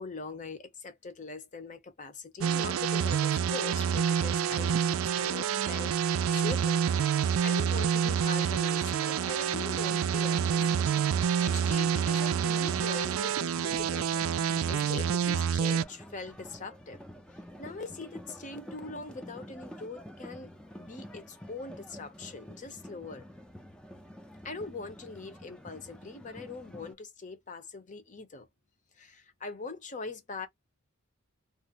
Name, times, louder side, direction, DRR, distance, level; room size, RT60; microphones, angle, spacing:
voice 1, 0.0-4.8 5.1-5.9 6.3-6.8 7.1-10.7 11.2-14.2 14.7-17.0 17.6-20.5 20.8-23.3 24.4-28.5 28.9-30.5, left 3 dB, 40° left, 0.8 m, -42 dB
sound 1, 2.4-15.8, right 7 dB, 75° right, 0.4 m, -27 dB
sound 2, 9.1-26.9, equal, 5° left, 0.5 m, -49 dB
2.5 x 2.0 x 3.8 m
head